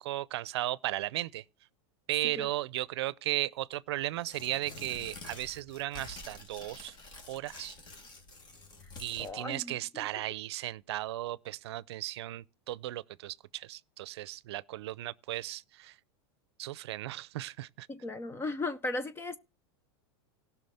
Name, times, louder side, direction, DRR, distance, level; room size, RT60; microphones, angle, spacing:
voice 1, 0.0-1.4 2.1-6.9 7.3-7.8 9.0-16.0 16.6-17.9, right 15 dB, 80° right, 0.6 m, -36 dB
Tearing, 4.2-9.3, left 2 dB, 35° left, 2.3 m, -48 dB
voice 2, 9.2-10.0 17.9-19.4, left 2 dB, 15° left, 0.6 m, -36 dB
17.5 x 6.0 x 4.2 m
supercardioid pair, 130°, 14 cm